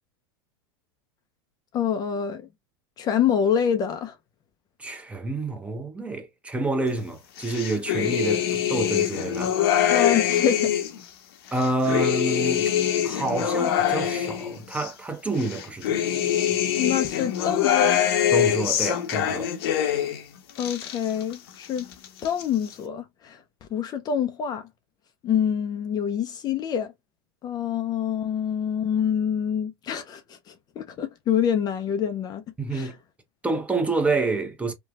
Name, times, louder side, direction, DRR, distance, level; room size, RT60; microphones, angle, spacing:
voice 1, 1.7-2.5 3.0-4.2 9.9-10.7 16.8-18.0 20.6-21.9 22.2-24.7 25.2-26.9 27.4-32.4 32.7-32.9, left 8 dB, 30° left, 0.4 m, -26 dB
voice 2, 4.8-9.6 11.5-12.7 13.0-16.0 16.5-16.6 18.3-19.5 32.6-33.0 33.4-34.7, right 2 dB, 10° right, 0.7 m, -28 dB
sound 1, 7.4-11.0 11.5-14.9 15.4-20.2 20.5-21.4 21.6-22.4, left 10 dB, 75° left, 0.8 m, -24 dB
3.1 x 2.2 x 2.3 m
hypercardioid pair, 115°, 13 cm